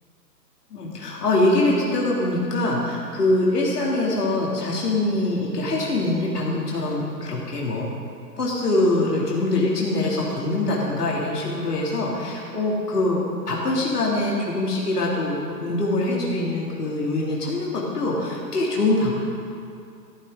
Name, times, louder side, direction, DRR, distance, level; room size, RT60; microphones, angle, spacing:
voice 1, 0.7-7.9 8.4-13.2 13.5-19.1, left 2 dB, 70° left, -4 dB, 3.1 m, -23 dB
15.0 x 14.5 x 3.9 m, 2.4 s
figure-of-eight pair, 130°, 49 cm